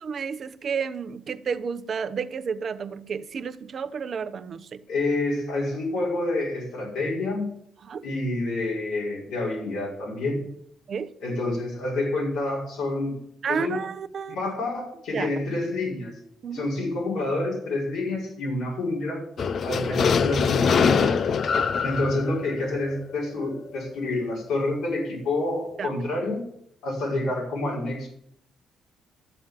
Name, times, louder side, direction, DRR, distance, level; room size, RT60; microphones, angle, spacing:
voice 1, 0.0-4.8 7.9-8.1 10.9-11.1 13.4-14.4 15.1-15.3 16.4-16.7 21.5-21.6 25.8-25.9, right 6 dB, 50° right, 0.9 m, -31 dB
voice 2, 4.9-7.5 8.0-10.4 11.2-13.2 13.5-13.8 14.3-16.2 16.5-19.2 19.6-21.1 21.8-26.4 26.8-28.1, left 2 dB, 85° left, 5.5 m, -28 dB
sound 1, 19.4-23.5, left 6 dB, 55° left, 0.6 m, -23 dB
13.0 x 7.3 x 7.6 m
cardioid pair, 90°, 0 cm